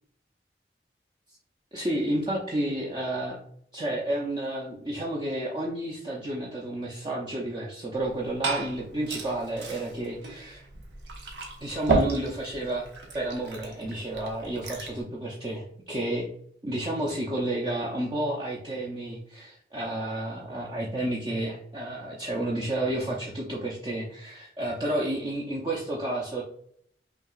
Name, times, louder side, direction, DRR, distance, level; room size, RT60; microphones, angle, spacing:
voice 1, 1.7-3.4 3.7-10.6 11.6-12.9 13.1-16.3 16.6-26.4, right 1 dB, 25° right, -4 dB, 0.6 m, -31 dB
Liquid, 7.9-15.0, right 3 dB, 80° right, 1.0 m, -33 dB
5.8 x 2.8 x 2.4 m, 0.65 s
head